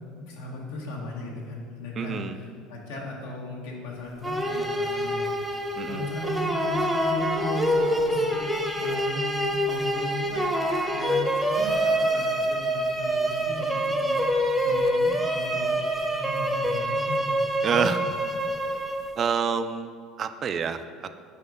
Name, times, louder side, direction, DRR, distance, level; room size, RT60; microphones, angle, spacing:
voice 1, 0.2-8.4 8.7-10.5 10.9-15.7 16.1-17.4 17.7-18.0, left 1 dB, 85° left, -2 dB, 1.2 m, -37 dB
voice 2, 2.0-2.3 5.7-6.0 17.6-18.0 19.2-21.2, right 6 dB, 40° right, 10 dB, 0.3 m, -28 dB
sound 1, 4.2-19.3, equal, 10° right, 0.7 m, -26 dB
4.8 x 4.3 x 5.2 m, 2.2 s
supercardioid pair, 95°, 0 cm